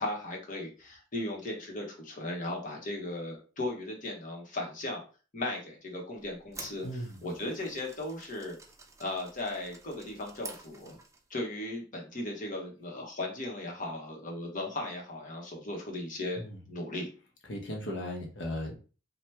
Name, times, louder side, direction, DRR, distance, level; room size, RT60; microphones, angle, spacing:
voice 1, 0.0-5.0 5.3-8.6 9.0-11.0 11.3-16.4 16.7-17.1, left 2 dB, 45° left, 0 dB, 0.9 m, -37 dB
sound 1, 6.2-11.3, right 4 dB, 15° right, 0.4 m, -50 dB
voice 2, 6.8-7.2 16.4-16.6 17.5-18.8, left 1 dB, 75° left, 1 dB, 0.8 m, -36 dB
2.8 x 2.2 x 3.3 m, 0.36 s
head